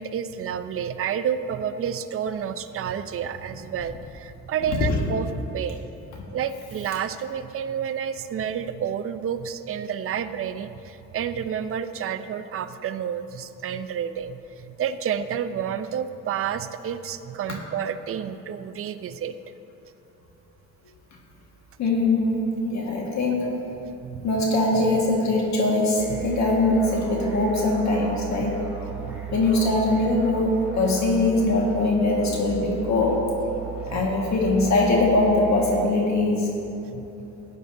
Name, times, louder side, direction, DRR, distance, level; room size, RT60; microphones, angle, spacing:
voice 1, 0.0-5.8 6.3-19.4 24.0-24.3 26.1-26.2 29.0-29.4 33.9-34.1 36.9-37.1, right 8 dB, 45° right, 10 dB, 0.5 m, -30 dB
voice 2, 21.8-23.5 24.2-28.6 29.3-33.3 33.9-36.5, left 2 dB, 65° left, -2 dB, 1.6 m, -22 dB
sound 1, 26.0-35.8, right 8 dB, 5° right, 2.3 m, -36 dB
15.0 x 10.5 x 2.6 m, 2.9 s
cardioid pair, 90°, 30 cm